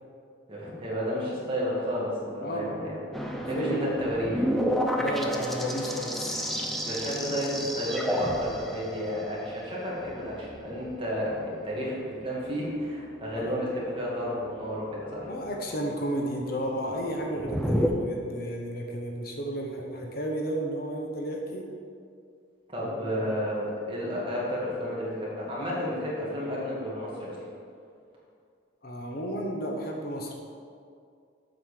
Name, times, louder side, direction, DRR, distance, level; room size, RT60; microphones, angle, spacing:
voice 1, 0.5-2.8 3.5-4.5 6.8-15.3 22.7-27.4, equal, 25° right, -6 dB, 2.2 m, -31 dB
voice 2, 2.4-2.7 3.3-3.9 5.0-6.4 13.3-13.6 15.3-21.6 22.8-23.2 28.8-30.3, right 1 dB, 50° left, 0 dB, 1.0 m, -33 dB
sound 1, 3.1-17.9, equal, ahead, 0.6 m, -33 dB
7.6 x 5.4 x 6.6 m, 2.3 s
head